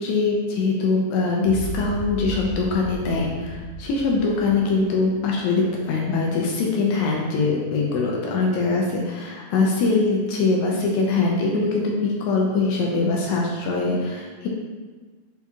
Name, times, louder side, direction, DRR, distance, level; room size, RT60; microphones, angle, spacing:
voice 1, 0.0-14.5, left 3 dB, 75° left, -1 dB, 1.8 m, -22 dB
sound 1, 1.4-5.8, right 1 dB, 70° right, 3.7 m, -35 dB
6.9 x 4.5 x 3.5 m, 1.4 s
omnidirectional pair, 4.0 m